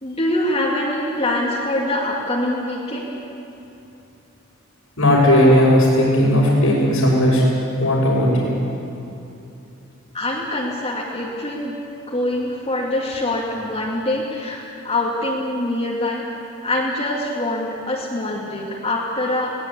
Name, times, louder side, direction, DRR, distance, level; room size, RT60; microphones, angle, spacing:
voice 1, 0.0-3.1 10.1-11.8 12.1-16.2 16.6-19.5, left 1 dB, 30° left, -5 dB, 2.6 m, -24 dB
voice 2, 5.0-7.4 7.8-8.5, left 1 dB, 85° left, -8 dB, 5.8 m, -16 dB
22.5 x 18.5 x 8.5 m, 2.8 s
head